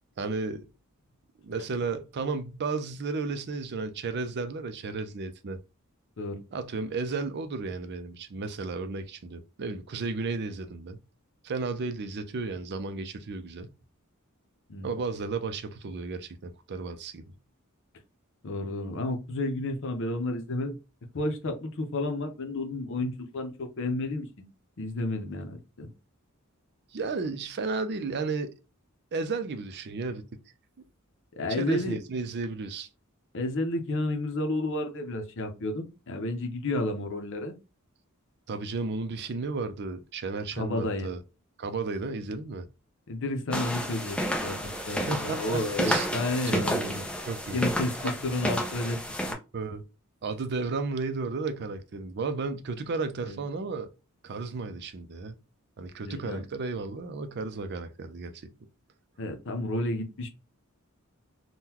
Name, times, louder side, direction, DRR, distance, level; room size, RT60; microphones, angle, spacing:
voice 1, 0.2-0.7 1.4-5.6 6.5-11.0 11.4-13.7 14.8-17.3 26.9-28.5 29.1-30.2 31.5-32.9 38.5-41.2 41.6-42.7 45.1-46.1 46.4-46.9 47.3-47.6 48.0-48.1 49.5-49.8 50.2-53.9 54.2-55.3 55.8-58.5, right 4 dB, 50° right, 0.5 m, -33 dB
voice 2, 18.4-20.8 21.1-24.5 24.8-25.9 31.4-32.0 33.3-37.5 40.6-41.1 43.1-47.1 47.5-49.4 53.2-53.4 56.0-56.4 59.2-60.3, left 2 dB, 60° left, 0.7 m, -31 dB
sound 1, 43.5-49.3, equal, 5° left, 0.5 m, -31 dB
3.7 x 2.2 x 2.8 m
head